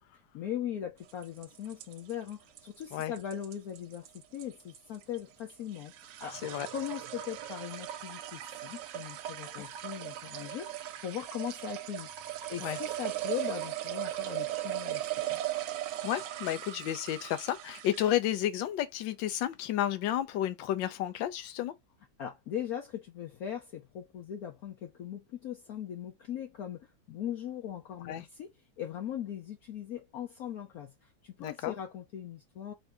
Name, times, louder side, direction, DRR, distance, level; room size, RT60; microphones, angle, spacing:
voice 1, 0.3-6.4 6.7-12.1 12.5-15.4 22.2-32.7, left 10 dB, 65° left, 1.0 m, -40 dB
sound 1, 1.1-18.3, right 13 dB, 80° right, 1.2 m, -38 dB
voice 2, 16.0-21.7 28.0-28.2 31.4-31.7, left 12 dB, 80° left, 1.4 m, -32 dB
3.8 x 2.6 x 3.4 m
omnidirectional pair, 2.0 m